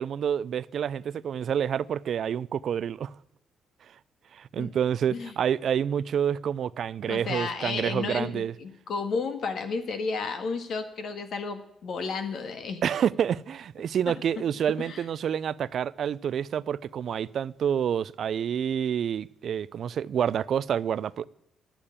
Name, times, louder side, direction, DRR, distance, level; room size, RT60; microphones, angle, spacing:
voice 1, 0.0-3.1 4.3-8.5 12.8-21.3, right 8 dB, 60° right, 0.4 m, -28 dB
voice 2, 7.0-12.8 14.1-14.2 14.8-15.1, left 4 dB, 65° left, 1.8 m, -32 dB
11.5 x 8.8 x 8.7 m
cardioid pair, 90°, 0 cm